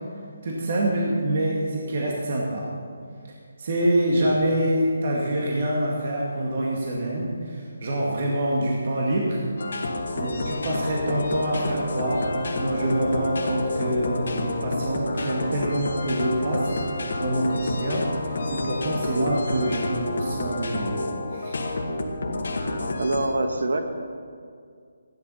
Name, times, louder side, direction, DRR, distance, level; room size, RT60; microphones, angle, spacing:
voice 1, 0.4-2.7 3.6-9.4 10.2-16.7 17.2-21.0 21.3-21.6, right 1 dB, 45° right, -3 dB, 2.0 m, -26 dB
sound 1, 9.6-23.3, left 2 dB, 65° left, 2.1 m, -29 dB
voice 2, 23.0-23.8, right 2 dB, 85° right, 5 dB, 1.4 m, -24 dB
15.5 x 11.5 x 5.7 m, 2.2 s
hypercardioid pair, 170°, 0 cm